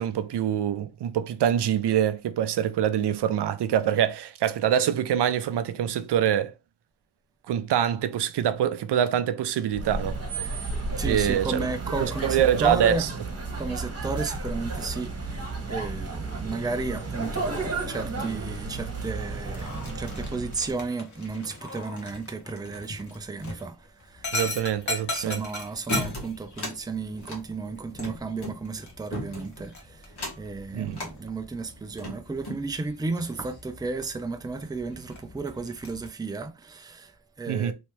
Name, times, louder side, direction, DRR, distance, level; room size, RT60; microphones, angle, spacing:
voice 1, 0.0-6.5 7.5-10.2 11.0-11.7 12.0-13.1 24.3-25.4 30.7-31.0 37.5-37.7, right 10 dB, 80° right, 0.5 m, -25 dB
sound 1, 9.7-20.8, right 3 dB, 40° right, 1.3 m, -33 dB
voice 2, 11.0-13.1 13.5-24.6 25.1-37.7, right 3 dB, 10° right, 0.4 m, -33 dB
Dog, 19.4-36.1, left 2 dB, 45° left, 1.3 m, -39 dB
sound 2, 25.9-26.8 27.2-28.6 29.1-29.6 30.1-30.5 30.9-31.1 31.7-32.6, left 1 dB, 70° left, 1.5 m, -35 dB
3.2 x 2.9 x 3.1 m
cardioid pair, 85°, 40 cm